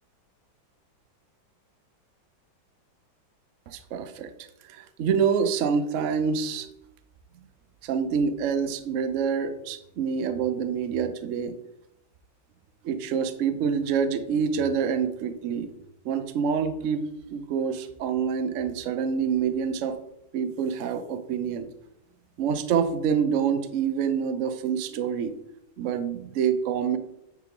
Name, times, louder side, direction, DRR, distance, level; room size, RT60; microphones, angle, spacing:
voice 1, 3.7-4.3 4.6-6.7 7.8-11.5 12.8-15.7 16.0-20.0 20.3-21.7 22.4-25.4 25.8-27.0, right 6 dB, 70° right, 9 dB, 0.7 m, -26 dB
9.3 x 4.6 x 3.8 m, 0.81 s
omnidirectional pair, 2.2 m